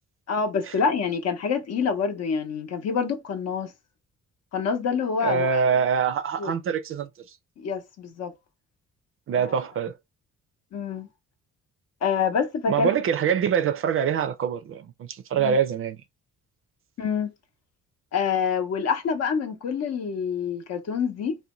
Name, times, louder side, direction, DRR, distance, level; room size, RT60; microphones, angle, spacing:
voice 1, 0.3-3.7 4.5-5.6 6.4-6.5 7.6-8.3 10.7-11.1 12.0-12.9 15.4-15.6 17.0-17.3 18.1-21.4, left 6 dB, 60° left, 0.7 m, -26 dB
voice 2, 5.2-7.1 9.3-9.9 12.7-16.0, right 7 dB, 45° right, 0.4 m, -24 dB
2.6 x 2.2 x 2.9 m
cardioid pair, 90°, 30 cm